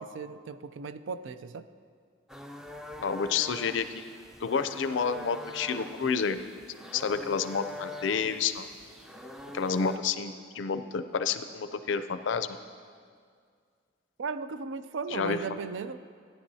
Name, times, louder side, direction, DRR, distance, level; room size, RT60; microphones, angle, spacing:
voice 1, 0.0-1.7 14.2-16.0, right 5 dB, 75° right, 12 dB, 0.4 m, -36 dB
sound 1, 2.3-10.0, left 2 dB, 5° right, 0.3 m, -44 dB
voice 2, 3.0-3.9 4.4-6.4 6.9-8.7 9.5-12.6 15.1-15.4, left 6 dB, 70° left, 10 dB, 0.5 m, -29 dB
16.0 x 9.7 x 2.7 m, 2.1 s
head